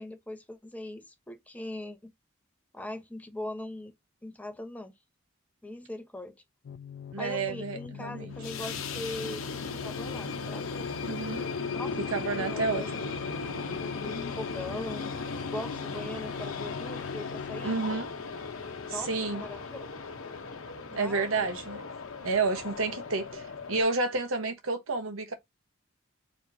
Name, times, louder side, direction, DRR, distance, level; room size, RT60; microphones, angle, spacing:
voice 1, 0.0-2.1 2.7-3.9 4.2-4.9 5.6-6.3 7.2-10.9 11.7-12.0 12.3-13.2 13.8-17.8 18.9-19.9 20.9-21.5, left 1 dB, 5° left, 0.9 m, -41 dB
sound 1, 6.6-17.8, left 7 dB, 55° left, 0.3 m, -42 dB
voice 2, 7.1-8.3 11.0-11.5 12.1-12.8 17.6-18.1 18.9-19.4 20.9-21.8 22.2-25.3, right 3 dB, 80° right, 1.1 m, -30 dB
sound 2, 8.3-23.8, left 4 dB, 75° left, 0.9 m, -37 dB
4.6 x 3.3 x 2.7 m
head